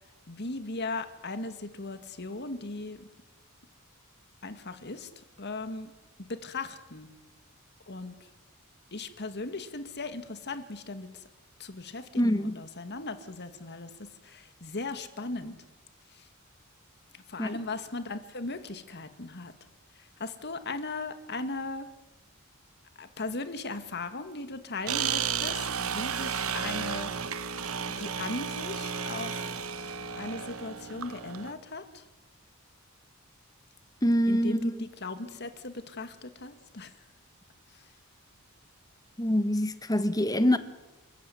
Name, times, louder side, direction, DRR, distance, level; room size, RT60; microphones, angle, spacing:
voice 1, 0.3-3.1 4.4-5.1 5.4-5.9 6.2-7.1 7.9-8.1 8.9-11.2 11.6-15.6 16.1-16.3 17.1-19.5 20.0-21.9 23.0-27.1 28.0-29.6 30.2-32.0 34.3-36.9 37.7-37.8, left 3 dB, 50° left, 2.1 m, -38 dB
voice 2, 12.2-12.5 17.4-17.6 34.0-34.9 39.2-40.6, equal, 15° left, 1.4 m, -25 dB
sound 1, 24.9-31.5, right 7 dB, 75° right, 1.4 m, -33 dB
29.5 x 15.0 x 9.4 m
head